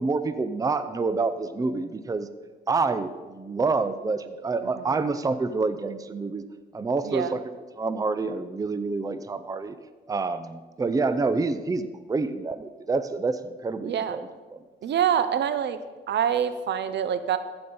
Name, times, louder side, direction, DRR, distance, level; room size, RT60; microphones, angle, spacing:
voice 1, 0.0-2.3 2.7-6.4 6.7-7.4 7.8-9.8 10.1-14.6, right 3 dB, 15° right, 11 dB, 0.6 m, -27 dB
voice 2, 4.6-5.0 7.0-7.3 13.8-14.2 14.8-15.8 16.1-17.4, right 9 dB, 60° right, 12 dB, 0.7 m, -26 dB
14.5 x 5.2 x 5.5 m, 1.3 s
cardioid pair, 90°, 20 cm